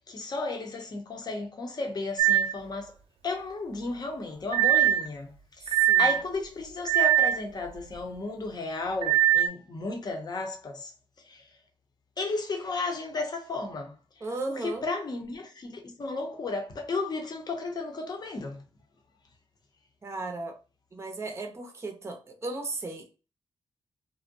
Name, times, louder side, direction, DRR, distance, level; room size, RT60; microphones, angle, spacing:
voice 1, 0.1-2.9 3.2-5.3 6.0-10.9 11.3-11.4 12.2-13.9 14.5-18.6, left 3 dB, 45° left, 0.7 m, -33 dB
sound 1, 2.2-2.5 4.5-5.1 5.7-6.2 6.9-7.4 9.0-9.5, right 12 dB, 75° right, 0.4 m, -21 dB
voice 2, 5.6-6.1 14.2-14.9 20.0-20.5 20.9-23.1, right 3 dB, 25° right, 0.6 m, -36 dB
2.5 x 2.1 x 2.6 m
cardioid pair, 105°, 10 cm